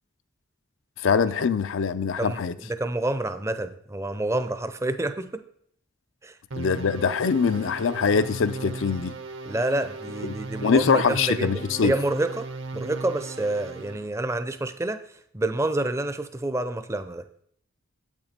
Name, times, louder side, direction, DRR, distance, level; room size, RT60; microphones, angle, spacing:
voice 1, 1.0-2.5 6.6-9.2 10.2-10.3 10.6-11.9, left 5 dB, 65° left, 0.4 m, -23 dB
voice 2, 2.2-5.4 6.2-6.3 9.4-15.0 15.3-17.2, right 2 dB, 15° right, 0.5 m, -28 dB
sound 1, 6.5-14.1, right 3 dB, 65° right, 0.9 m, -37 dB
8.9 x 8.5 x 4.3 m
head